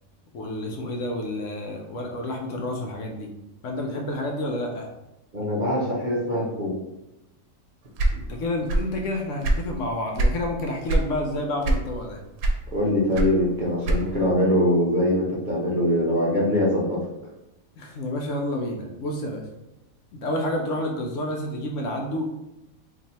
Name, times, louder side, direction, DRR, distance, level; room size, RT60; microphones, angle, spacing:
voice 1, 0.3-3.3 3.6-4.9 8.1-12.2 17.8-19.5 20.1-22.2, left 1 dB, 70° left, 1 dB, 0.9 m, -29 dB
voice 2, 5.3-6.8 12.7-17.0, left 1 dB, 40° right, -5 dB, 0.9 m, -23 dB
sound 1, 8.0-9.0 9.3-10.4 10.9-11.1 11.6-12.1 12.4-14.3, right 1 dB, 90° right, 1.0 m, -23 dB
3.1 x 2.6 x 4.0 m, 0.91 s
omnidirectional pair, 1.5 m